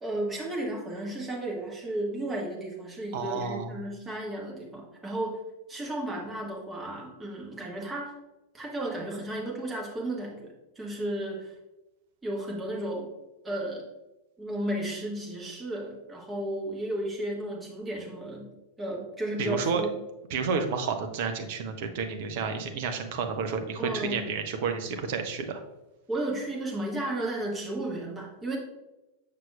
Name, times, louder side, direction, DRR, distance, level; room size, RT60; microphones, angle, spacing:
voice 1, 0.0-8.2 8.5-11.5 12.2-13.1 13.4-13.9 14.4-18.5 18.8-19.9 23.8-24.3 26.1-28.6, right 1 dB, 15° right, -2 dB, 1.5 m, -33 dB
voice 2, 3.1-3.7 19.4-19.8 20.3-25.6, right 5 dB, 50° right, 6 dB, 0.7 m, -30 dB
6.8 x 5.9 x 2.3 m, 1.0 s
figure-of-eight pair, 90°, 0 cm